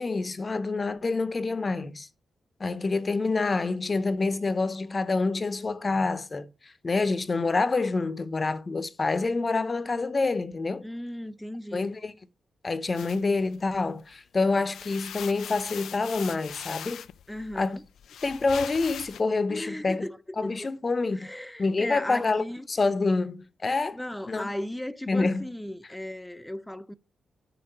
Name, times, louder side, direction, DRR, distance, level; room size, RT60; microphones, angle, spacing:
voice 1, 0.0-2.1 2.6-10.8 11.7-12.1 12.6-17.0 17.6-17.8 18.2-20.1 20.4-21.3 21.6-24.0 24.3-24.5 25.1-25.4, left 3 dB, 40° left, 0.9 m, -27 dB
voice 2, 10.8-11.9 17.3-17.8 19.5-20.5 21.1-22.7 23.9-26.9, left 1 dB, 10° left, 0.8 m, -36 dB
sound 1, 13.0-14.1 14.5-19.2, left 9 dB, 80° left, 0.4 m, -41 dB
6.4 x 5.9 x 6.5 m
supercardioid pair, 50°, 0 cm